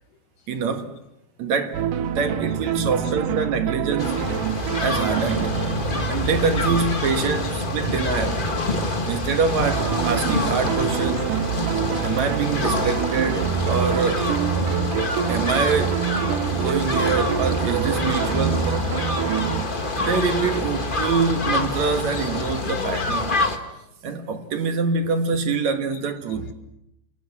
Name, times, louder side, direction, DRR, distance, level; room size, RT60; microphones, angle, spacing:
voice 1, 0.5-0.9 1.4-1.8 2.2-4.3 4.8-5.7 6.1-8.5 9.0-11.3 12.0-14.3 15.3-16.1 16.5-18.7 19.9-23.4 24.0-26.5, right 5 dB, 65° right, 2.8 m, -25 dB
sound 1, 1.7-19.6, right 9 dB, 85° right, 2.8 m, -27 dB
sound 2, 4.0-23.6, left 2 dB, 30° left, 1.0 m, -26 dB
voice 2, 14.6-15.2 18.5-19.0 22.6-23.0, left 2 dB, 80° left, 3.6 m, -35 dB
28.5 x 28.0 x 6.2 m
omnidirectional pair, 3.6 m